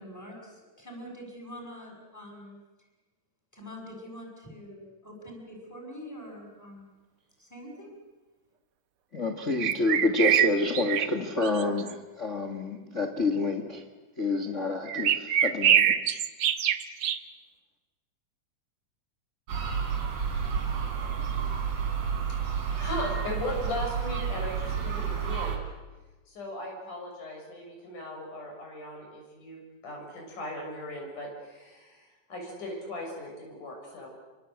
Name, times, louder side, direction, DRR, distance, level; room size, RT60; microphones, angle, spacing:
voice 1, 0.0-2.6 3.5-6.9 7.4-7.9, equal, 5° left, 6.6 m, -44 dB
voice 2, 9.1-13.8 14.2-15.9, left 2 dB, 35° left, 1.1 m, -28 dB
sound 1, 9.6-11.1 11.4-11.9 14.9-17.2, right 10 dB, 85° right, 1.2 m, -24 dB
sound 2, 19.5-25.6, right 7 dB, 50° right, 4.0 m, -30 dB
voice 3, 22.3-25.7 26.3-34.1, left 1 dB, 60° left, 8.2 m, -38 dB
28.5 x 24.5 x 8.1 m
omnidirectional pair, 4.0 m